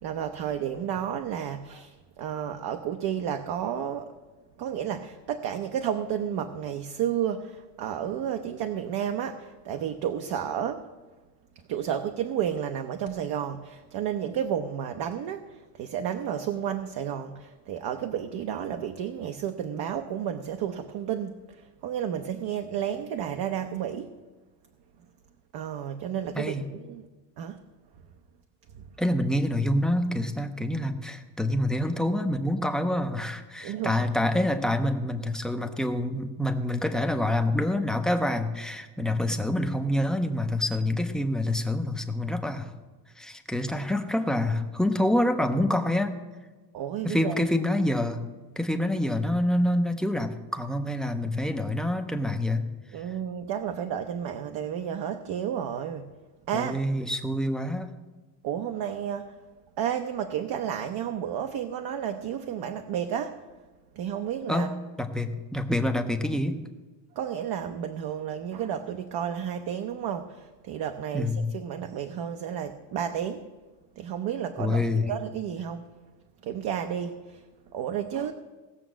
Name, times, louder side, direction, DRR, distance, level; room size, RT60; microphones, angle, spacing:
voice 1, 0.0-4.1 4.6-10.9 11.7-24.1 25.5-27.1 27.4-27.6 28.7-28.8 33.6-34.0 46.7-47.4 52.9-56.1 56.5-56.9 58.4-59.4 59.8-63.4 63.9-64.7 67.2-73.5 74.0-75.9 76.4-77.4 77.7-78.3, right 9 dB, 55° right, 6 dB, 0.8 m, -32 dB
voice 2, 29.0-42.7 43.2-46.1 47.0-48.2 48.6-52.6 56.5-57.9 64.5-64.7 65.0-66.5 71.1-71.4 74.6-75.0, left 1 dB, ahead, 5 dB, 0.5 m, -27 dB
17.5 x 7.0 x 6.2 m, 1.3 s
cardioid pair, 170°, 49 cm